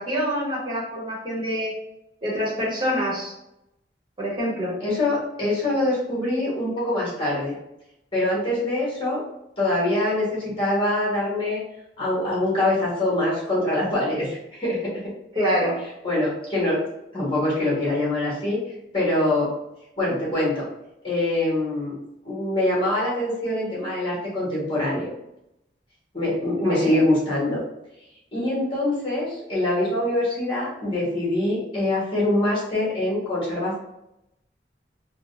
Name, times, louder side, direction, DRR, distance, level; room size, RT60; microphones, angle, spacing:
voice 1, 0.0-1.7 2.2-3.3 4.2-4.7 15.3-15.8 26.6-26.9, equal, 25° right, -6 dB, 1.2 m, -26 dB
voice 2, 4.8-7.5 8.1-9.2 9.6-11.6 12.0-15.0 16.0-16.8 17.1-18.6 18.9-19.5 20.0-20.6 21.0-21.9 22.2-25.1 26.1-27.6 28.3-33.8, left 1 dB, 30° left, -6 dB, 1.3 m, -24 dB
3.6 x 2.2 x 2.5 m, 0.85 s
head